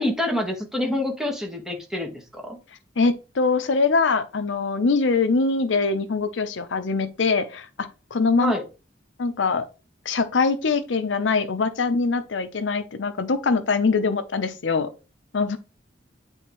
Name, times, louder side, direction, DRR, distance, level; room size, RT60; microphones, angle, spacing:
voice 1, 0.0-2.6 8.4-8.6, left 1 dB, 5° right, 1.3 m, -27 dB
voice 2, 3.0-8.5 9.2-9.7 10.1-14.9 15.3-15.6, left 4 dB, 85° left, 0.6 m, -23 dB
9.2 x 3.5 x 3.0 m
head